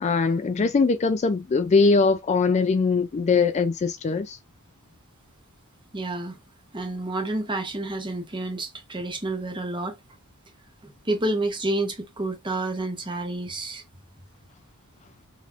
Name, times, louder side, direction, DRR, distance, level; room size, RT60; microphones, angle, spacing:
voice 1, 0.0-4.4, left 4 dB, 30° left, 0.3 m, -21 dB
voice 2, 5.9-6.4 6.7-10.0 10.8-13.8, right 2 dB, 20° right, 0.9 m, -29 dB
3.9 x 3.0 x 2.4 m
head